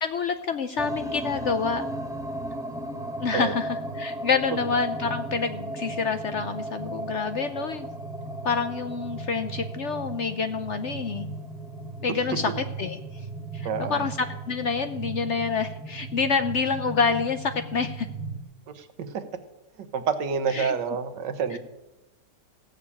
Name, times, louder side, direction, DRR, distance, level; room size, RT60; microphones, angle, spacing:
voice 1, 0.0-1.8 3.2-7.9 8.4-11.3 12.0-12.5 12.8-13.3 13.5-18.1 20.5-20.7 21.5-21.6, left 5 dB, 60° left, 9 dB, 0.7 m, -27 dB
sound 1, 0.8-18.4, right 2 dB, ahead, 0.9 m, -35 dB
voice 2, 12.1-12.4 13.6-14.1 18.7-19.3 19.8-21.6, right 6 dB, 85° right, 10 dB, 1.7 m, -29 dB
15.5 x 6.7 x 8.5 m, 1.0 s
omnidirectional pair, 1.8 m